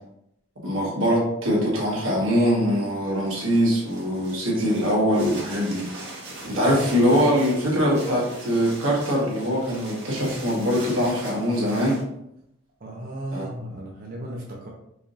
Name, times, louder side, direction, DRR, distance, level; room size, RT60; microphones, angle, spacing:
voice 1, 0.6-5.8 6.5-12.0 13.3-13.4, equal, 90° right, -4 dB, 1.3 m, -22 dB
sound 1, 3.1-12.0, right 2 dB, 60° right, 1.4 m, -41 dB
voice 2, 12.8-14.7, right 1 dB, 45° right, -3 dB, 0.7 m, -36 dB
4.8 x 2.7 x 2.5 m, 0.79 s
head